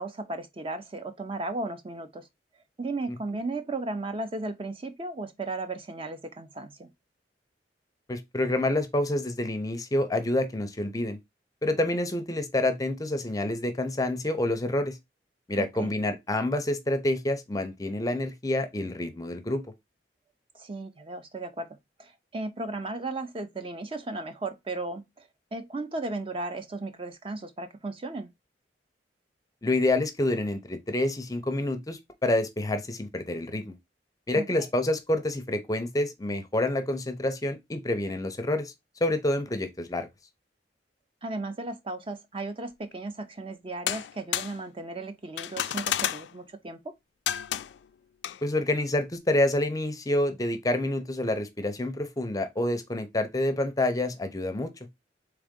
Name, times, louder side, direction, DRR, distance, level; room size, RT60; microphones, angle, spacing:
voice 1, 0.0-2.3 2.8-6.9 15.6-15.9 20.5-21.7 22.0-28.3 34.3-34.5 41.2-46.9, right 2 dB, 30° right, 0.5 m, -35 dB
voice 2, 8.1-11.2 11.6-15.0 15.5-19.6 29.6-33.8 34.3-38.7 39.0-40.1 48.4-54.7, left 1 dB, 20° left, 0.5 m, -28 dB
sound 1, 43.9-44.6 45.4-46.3 47.3-47.8 48.2-48.4, left 11 dB, 70° left, 0.3 m, -30 dB
3.8 x 3.4 x 3.6 m
head